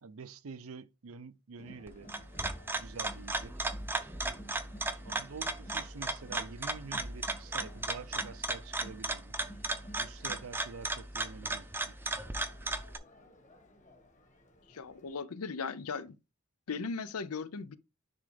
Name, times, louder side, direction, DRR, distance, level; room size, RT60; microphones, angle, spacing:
voice 1, 0.0-2.1 2.8-3.6 5.0-9.3 10.0-11.9, right 5 dB, 70° right, 0.6 m, -47 dB
Crowd, 1.6-15.1, equal, 35° left, 1.5 m, -55 dB
sound 1, 1.9-13.0, right 2 dB, 10° right, 0.6 m, -35 dB
voice 2, 14.7-16.1 16.7-17.8, left 5 dB, 90° left, 0.6 m, -37 dB
10.0 x 3.7 x 3.4 m
head